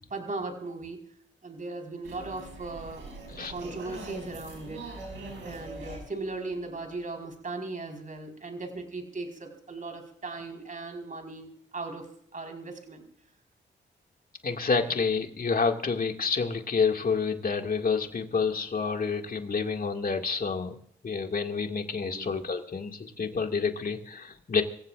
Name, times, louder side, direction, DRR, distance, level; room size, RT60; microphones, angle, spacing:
voice 1, 0.1-1.0 1.4-3.1 3.5-4.8 5.4-13.1 14.8-15.0 22.1-22.4, right 3 dB, 45° right, 4 dB, 4.5 m, -38 dB
sound 1, 2.0-7.2, right 2 dB, 80° right, 6.2 m, -43 dB
voice 2, 14.4-20.8 21.0-24.6, left 5 dB, 50° left, 4 dB, 2.1 m, -28 dB
25.5 x 15.5 x 2.5 m, 0.63 s
supercardioid pair, 50°, 19 cm